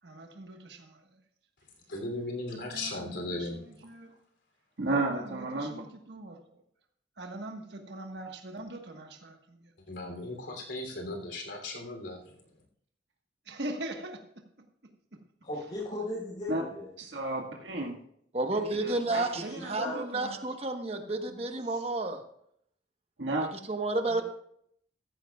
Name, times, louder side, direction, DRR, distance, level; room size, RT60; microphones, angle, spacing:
voice 1, 0.0-1.2 2.5-4.1 5.1-6.6 7.1-9.7 13.4-15.2 19.4-20.6 21.6-21.9 24.1-24.2, right 1 dB, 60° right, 3 dB, 1.4 m, -43 dB
voice 2, 1.9-3.6 9.9-12.3, left 2 dB, 70° left, 2 dB, 3.2 m, -37 dB
voice 3, 4.8-5.7 16.5-16.6 17.0-17.9 18.8-19.2 23.2-23.5, right 2 dB, 80° right, 0 dB, 1.8 m, -31 dB
voice 4, 15.4-16.9 19.1-20.0, left 1 dB, 40° left, -8 dB, 5.2 m, -37 dB
voice 5, 18.3-22.2 23.7-24.2, right 2 dB, 35° right, 5 dB, 1.2 m, -31 dB
14.5 x 14.5 x 2.4 m, 0.69 s
head